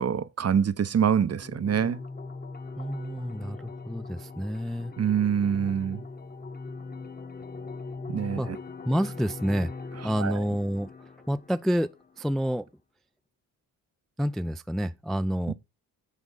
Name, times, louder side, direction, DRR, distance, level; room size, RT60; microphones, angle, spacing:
voice 1, 0.0-2.0 5.0-6.0 8.1-8.6 10.2-10.4 15.5-15.6, right 8 dB, 35° right, 0.8 m, -25 dB
sound 1, 1.2-12.2, left 3 dB, 20° left, 1.1 m, -41 dB
voice 2, 2.8-4.9 8.4-8.5 8.8-9.7 10.0-10.9 11.3-12.7 14.2-15.5, equal, ahead, 0.4 m, -28 dB
10.0 x 3.5 x 5.5 m
supercardioid pair, 55°, 42 cm